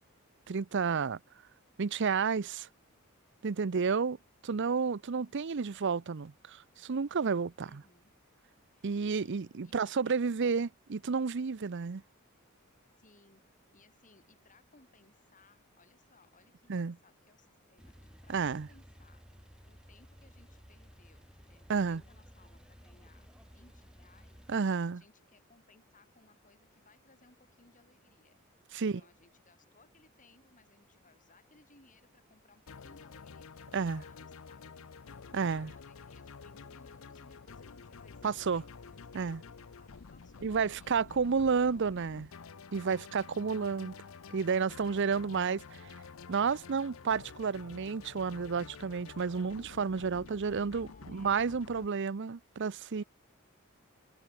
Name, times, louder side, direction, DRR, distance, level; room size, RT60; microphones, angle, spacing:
voice 1, 0.5-1.2 1.8-2.7 3.4-4.2 4.4-7.8 8.8-12.0 16.7-16.9 18.3-18.7 21.7-22.0 24.5-25.0 28.7-29.0 33.7-34.0 35.3-35.7 38.2-38.6 39.1-39.4 40.4-42.3 42.7-43.9 44.3-45.6 46.3-53.0, right 5 dB, 60° right, 0.6 m, -31 dB
voice 2, 7.6-8.1 8.7-8.9 9.2-10.1 10.4-10.7 13.0-13.4 13.7-19.2 19.7-24.4 24.8-28.4 28.8-34.6 35.2-39.3 39.8-41.9 50.7-51.7 53.0-53.1, left 3 dB, 40° left, 5.7 m, -64 dB
Male speech man speaking / Car / Idling, 17.8-24.6, equal, 5° right, 3.5 m, -56 dB
sound 1, 32.7-51.9, left 5 dB, 75° left, 0.7 m, -50 dB
head